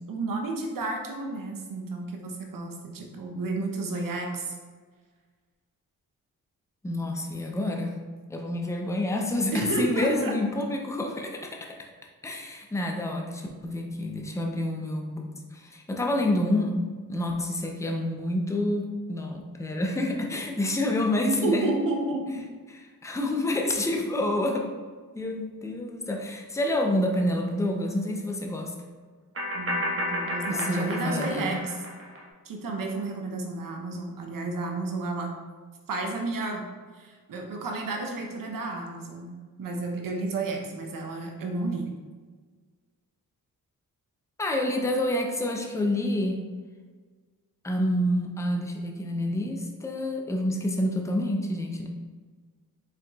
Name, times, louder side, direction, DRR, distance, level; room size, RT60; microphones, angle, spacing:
voice 1, 0.1-4.6 9.5-10.3 21.3-22.3 29.5-31.8 32.4-35.4 35.9-36.6 36.9-39.3 39.6-41.9, right 3 dB, 65° right, 2 dB, 0.9 m, -31 dB
voice 2, 6.8-8.0 8.3-11.8 12.2-16.8 17.1-21.7 23.0-24.7 25.1-28.7 30.5-31.6 44.4-46.4 47.6-51.9, left 1 dB, 10° left, 2 dB, 0.5 m, -28 dB
sound 1, 27.3-27.4 29.4-32.2, left 1 dB, 40° right, 1.0 m, -32 dB
4.6 x 3.6 x 2.3 m, 1.5 s
cardioid pair, 70°, 35 cm